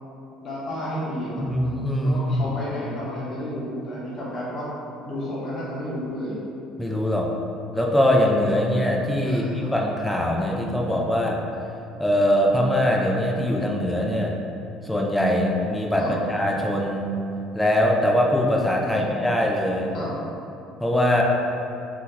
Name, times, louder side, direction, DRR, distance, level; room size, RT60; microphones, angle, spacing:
voice 1, 0.4-1.4 2.0-4.7 5.0-6.4 9.2-9.7 16.0-16.1 18.8-19.0 19.9-20.1, equal, 40° left, -7 dB, 0.9 m, -32 dB
voice 2, 1.4-2.6 6.8-7.3 7.7-11.4 12.0-14.3 14.8-17.0 17.6-19.9 20.8-21.2, left 1 dB, 5° left, -1 dB, 0.3 m, -22 dB
2.7 x 2.1 x 3.7 m, 2.8 s
cardioid pair, 140°, 0 cm